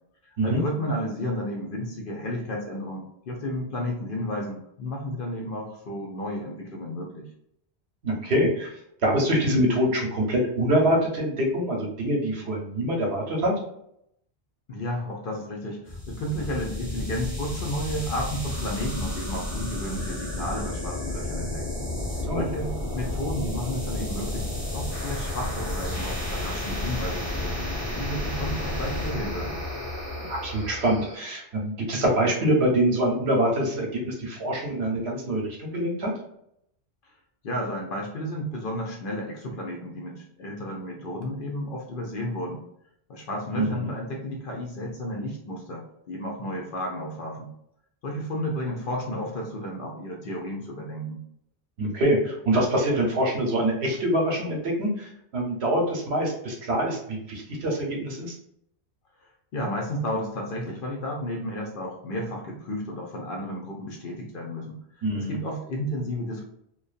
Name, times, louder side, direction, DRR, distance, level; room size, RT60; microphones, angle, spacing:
voice 1, 0.2-7.3 14.7-21.6 22.1-27.7 28.0-29.5 37.4-42.6 43.1-47.5 48.0-51.2 59.2-66.4, equal, 60° left, 0 dB, 0.6 m, -32 dB
voice 2, 8.0-8.7 9.0-13.5 22.2-22.4 30.2-36.1 43.6-43.9 51.8-58.3 65.0-65.4, right 1 dB, 70° right, 0 dB, 1.0 m, -25 dB
sound 1, 15.9-31.2, left 1 dB, 15° left, 0.8 m, -31 dB
2.6 x 2.1 x 2.4 m, 0.74 s
omnidirectional pair, 1.1 m